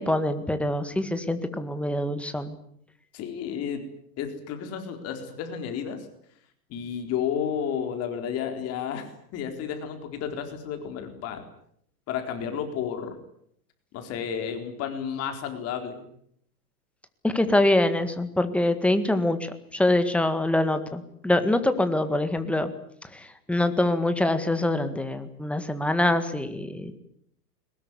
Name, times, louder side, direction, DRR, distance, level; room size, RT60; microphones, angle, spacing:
voice 1, 0.0-2.6 17.2-19.4 19.7-22.7 23.1-26.9, left 1 dB, ahead, 9 dB, 1.8 m, -24 dB
voice 2, 3.1-3.8 4.2-6.0 6.7-9.1 9.3-11.4 12.1-13.2 13.9-16.0, left 8 dB, 30° left, 6 dB, 4.1 m, -32 dB
22.5 x 20.5 x 9.8 m, 0.68 s
supercardioid pair, 150°, 49 cm